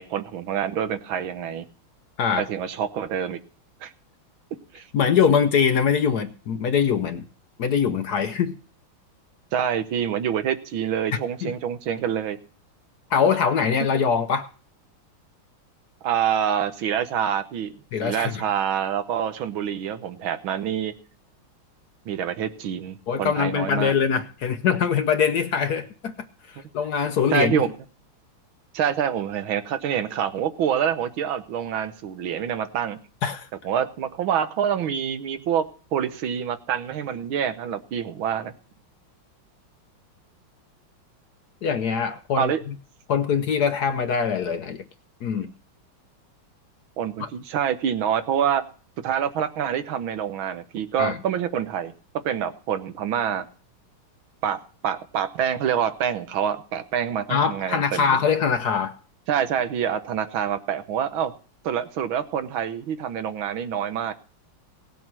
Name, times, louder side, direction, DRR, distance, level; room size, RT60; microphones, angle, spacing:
voice 1, 0.0-1.7 2.4-3.4 3.8-3.9 4.7-4.9 9.5-12.4 16.0-17.7 18.0-20.9 22.1-23.9 27.3-27.7 28.7-33.0 33.6-35.7 35.9-38.5 42.4-42.6 47.0-48.6 49.0-51.9 52.2-53.5 54.4-54.6 54.8-58.2 59.3-61.3 61.6-64.1, right 9 dB, 75° right, 1.7 m, -26 dB
voice 2, 4.9-7.2 7.6-8.5 11.4-11.5 13.1-14.5 17.9-18.4 23.1-26.1 26.5-27.6 33.2-33.5 41.6-42.7 43.1-44.8 45.2-45.5 47.2-47.3 51.0-51.2 57.3-59.0, left 7 dB, 65° left, 1.1 m, -23 dB
17.5 x 7.8 x 6.0 m
omnidirectional pair, 2.2 m